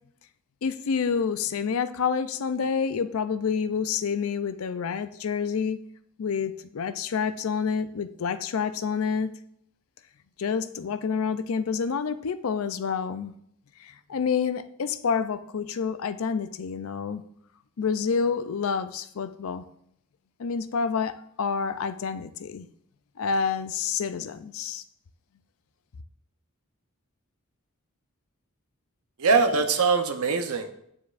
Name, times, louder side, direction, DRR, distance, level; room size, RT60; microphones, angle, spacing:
voice 1, 0.6-5.8 6.2-9.3 10.4-13.3 13.8-17.2 17.8-19.6 20.4-22.7 23.2-24.8, left 6 dB, 70° left, 12 dB, 0.4 m, -28 dB
voice 2, 29.2-30.7, right 4 dB, 80° right, 6 dB, 0.8 m, -22 dB
9.2 x 7.1 x 2.5 m, 0.71 s
head